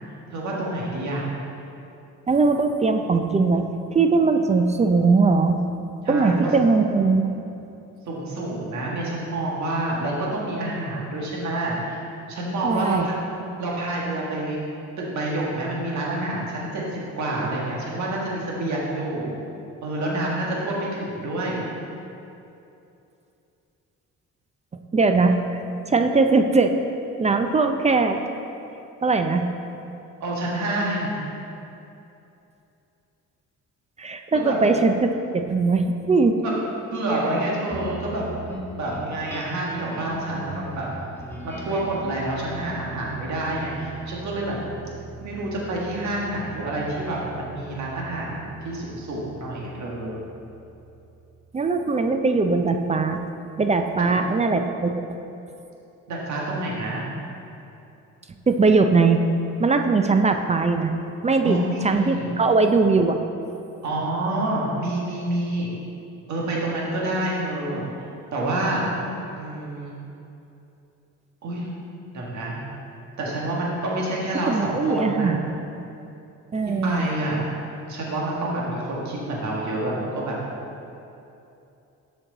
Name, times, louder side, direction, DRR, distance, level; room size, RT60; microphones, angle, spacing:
voice 1, 0.3-1.2 6.0-6.5 8.0-12.0 12.3-13.1 13.6-14.6 15.0-19.3 19.8-21.6 30.2-31.1 34.0-34.6 36.4-36.5 36.9-38.2 38.7-40.9 41.4-44.6 45.2-50.2 54.0-54.1 56.1-57.0 61.4-62.3 63.8-65.7 66.3-67.9 68.3-68.9 69.4-69.9 71.4-71.7 72.1-72.6 73.2-75.3 76.8-77.5 77.9-80.4, right 1 dB, 70° right, -4 dB, 1.7 m, -28 dB
voice 2, 2.3-5.6 6.1-7.3 12.6-13.1 24.9-25.6 25.9-26.8 27.2-28.2 29.0-29.5 34.0-36.4 51.5-53.2 53.6-55.1 58.5-59.2 59.6-60.9 61.2-63.2 74.5-75.6 76.5-77.0, right 4 dB, 25° right, 6 dB, 0.4 m, -20 dB
sound 1, 37.7-52.4, right 2 dB, 10° left, 1.1 m, -40 dB
6.4 x 6.3 x 3.9 m, 2.8 s
cardioid pair, 90°, 30 cm